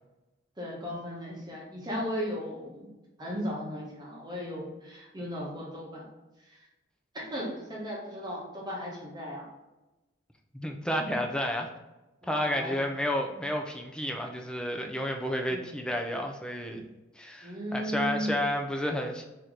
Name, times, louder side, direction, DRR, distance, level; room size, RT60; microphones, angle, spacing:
voice 1, 0.6-2.9 3.2-6.1 6.5-6.6 7.1-9.4 12.2-12.8 15.5-15.7 17.4-18.4, equal, 20° right, -4 dB, 1.1 m, -36 dB
voice 2, 10.5-11.7 12.2-16.9 17.2-19.2, equal, 5° left, 2 dB, 0.3 m, -31 dB
3.2 x 2.9 x 3.8 m, 1.0 s
head